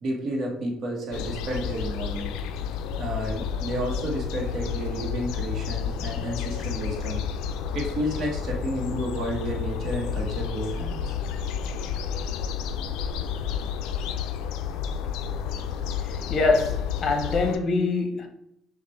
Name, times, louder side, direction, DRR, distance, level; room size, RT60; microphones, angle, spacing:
voice 1, 0.0-2.3 3.0-7.2 7.7-11.1 12.2-12.3, right 1 dB, 55° right, 1.2 m, -31 dB
sound 1, 1.1-17.6, left 7 dB, 80° left, 0.3 m, -31 dB
voice 2, 16.0-18.3, left 3 dB, 45° left, 0.8 m, -24 dB
6.0 x 2.5 x 3.2 m
supercardioid pair, 85°, 0 cm